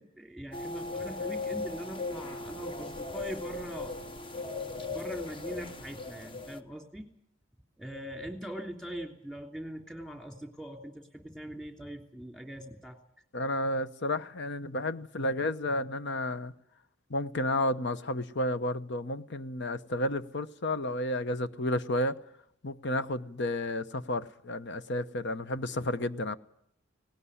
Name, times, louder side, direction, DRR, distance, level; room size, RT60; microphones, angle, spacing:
voice 1, 0.0-4.0 4.7-7.1 7.8-13.0, right 1 dB, 5° left, 4 dB, 3.0 m, -41 dB
sound 1, 0.5-6.6, left 3 dB, 25° left, 1.1 m, -38 dB
voice 2, 13.3-16.5 17.1-22.2 22.6-26.4, left 1 dB, 60° left, 12 dB, 1.0 m, -31 dB
18.5 x 18.5 x 9.9 m, 0.72 s
head